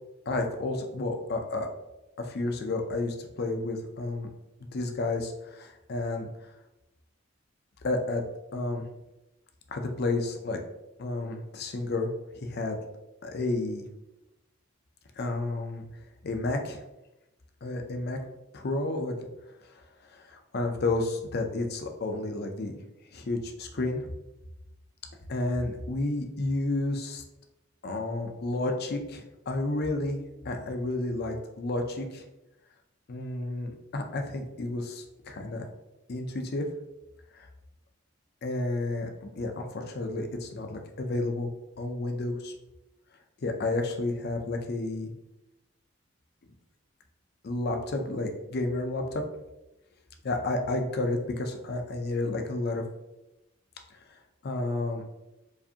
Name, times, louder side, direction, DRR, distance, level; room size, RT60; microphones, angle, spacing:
voice 1, 0.3-1.7 2.2-4.3 4.7-6.3 7.8-8.2 8.5-8.8 9.7-10.6 11.0-12.1 12.4-12.8 13.2-13.8 15.2-15.8 16.2-16.8 17.6-18.2 18.5-19.2 20.1-22.7 23.1-24.0 25.3-27.2 27.8-32.2 33.1-35.7 36.1-36.7 37.3-37.5 38.4-41.5 41.8-42.5 43.4-45.1 47.4-49.2 50.2-52.8 54.4-55.0, left 2 dB, 50° left, 4 dB, 0.5 m, -31 dB
4.8 x 2.6 x 2.7 m, 0.95 s
head